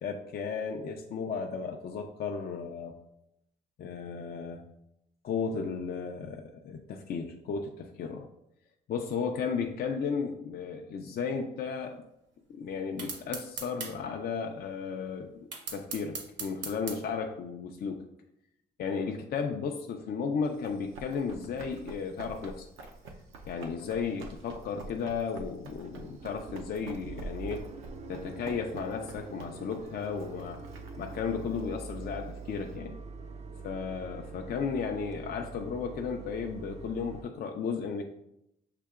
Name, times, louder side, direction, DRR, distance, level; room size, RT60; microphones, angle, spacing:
voice 1, 0.0-2.9 3.8-4.7 5.2-8.3 8.9-12.0 12.5-18.0 18.8-22.7 23.5-27.6 28.1-30.6 31.0-33.0 33.6-38.0, left 5 dB, 50° left, 3 dB, 0.4 m, -34 dB
sound 1, 13.0-13.9 15.5-17.0, right 4 dB, 70° right, 1.0 m, -38 dB
Run, 20.4-32.7, right 2 dB, 85° right, 0.6 m, -48 dB
sound 2, 23.6-23.7 24.2-24.6 24.9-25.0 25.3-25.4 25.7-37.2, right 4 dB, 35° right, 0.4 m, -44 dB
6.5 x 2.8 x 2.4 m, 0.80 s
cardioid pair, 90°, 20 cm